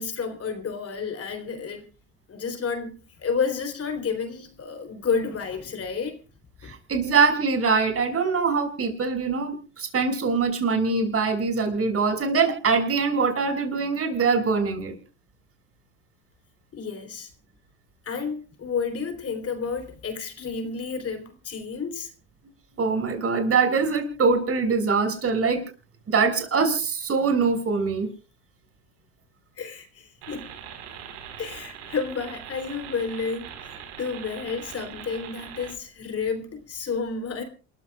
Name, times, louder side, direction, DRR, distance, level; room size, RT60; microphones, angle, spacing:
voice 1, 0.0-1.9 2.3-6.2 6.6-6.7 16.7-17.3 18.0-22.1 29.6-30.5 31.4-37.4, left 5 dB, 40° left, 3.5 m, -31 dB
voice 2, 6.6-14.9 22.8-25.6 26.1-28.1, right 4 dB, 40° right, 6.2 m, -23 dB
sound 1, 30.2-35.7, right 8 dB, 90° right, 4.3 m, -41 dB
28.0 x 14.5 x 2.4 m
supercardioid pair, 80°, 35 cm